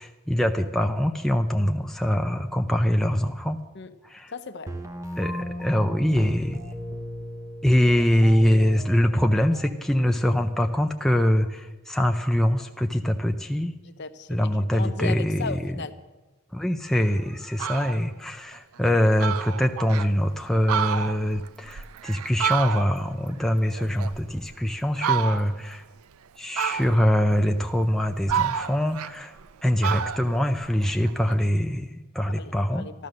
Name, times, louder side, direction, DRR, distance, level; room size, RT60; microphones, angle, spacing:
voice 1, 0.0-3.6 4.0-4.3 5.2-6.6 7.6-13.8 14.3-15.7 16.5-25.8 26.4-29.3 29.6-32.9, equal, ahead, 4 dB, 0.4 m, -23 dB
voice 2, 4.3-4.7 13.8-16.0 29.7-30.0 32.3-33.1, left 4 dB, 50° left, 10 dB, 0.8 m, -37 dB
sound 1, 4.7-10.7, equal, 15° right, 0.9 m, -36 dB
Fowl, 17.0-17.1 17.4-18.0 18.5-18.6 18.9-19.0 19.2-20.1 20.5-23.2 23.5-24.5 25.0-25.7 26.6-27.2 27.8-29.5 29.8-31.4, right 8 dB, 75° right, 0.4 m, -29 dB
14.0 x 12.5 x 6.5 m, 1.2 s
head